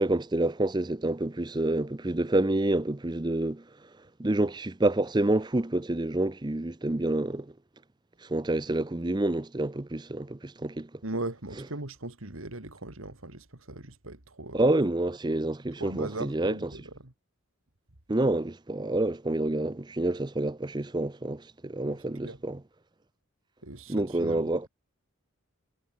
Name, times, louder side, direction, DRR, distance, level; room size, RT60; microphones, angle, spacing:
voice 1, 0.0-3.6 4.2-7.5 8.2-10.9 14.5-16.7 18.1-22.6 23.9-24.7, right 2 dB, 20° right, 0.6 m, -28 dB
voice 2, 11.0-14.6 15.8-17.1 21.8-22.0 22.2-22.4 23.6-24.5, right 2 dB, 75° right, 2.8 m, -39 dB
head